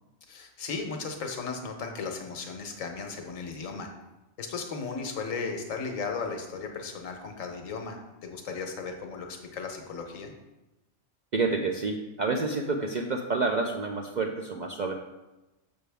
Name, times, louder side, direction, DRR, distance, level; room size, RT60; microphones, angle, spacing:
voice 1, 0.3-3.9 4.4-10.3, left 4 dB, 85° left, 4 dB, 1.3 m, -36 dB
voice 2, 11.3-14.9, right 3 dB, 60° right, 2 dB, 0.4 m, -29 dB
6.8 x 6.2 x 3.4 m, 1.0 s
omnidirectional pair, 1.3 m